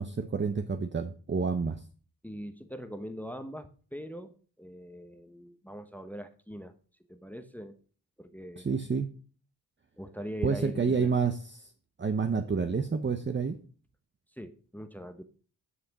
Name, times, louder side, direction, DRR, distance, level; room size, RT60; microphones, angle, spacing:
voice 1, 0.0-1.8 8.6-9.1 10.4-11.7 12.0-13.6, right 5 dB, 30° right, 7 dB, 0.7 m, -29 dB
voice 2, 2.2-6.7 7.1-7.8 8.2-8.7 9.9-11.2 14.3-15.2, equal, 5° left, 9 dB, 0.9 m, -41 dB
9.8 x 5.7 x 5.4 m, 0.40 s
cardioid pair, 85°, 39 cm